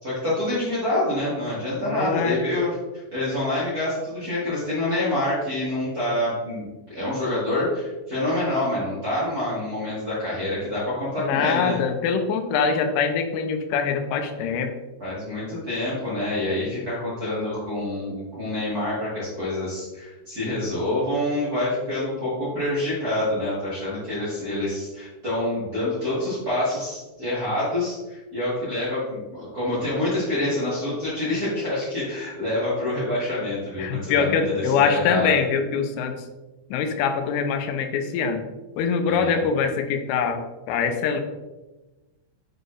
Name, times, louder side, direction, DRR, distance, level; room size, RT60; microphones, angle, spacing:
voice 1, 0.0-11.8 15.0-35.3 39.0-39.4, left 1 dB, 50° right, -10 dB, 1.0 m, -27 dB
voice 2, 1.8-2.4 11.2-14.7 33.8-36.2 36.7-38.4 38.8-41.2, left 6 dB, 85° left, 7 dB, 3.1 m, -23 dB
7.8 x 4.2 x 3.3 m, 1.1 s
omnidirectional pair, 5.7 m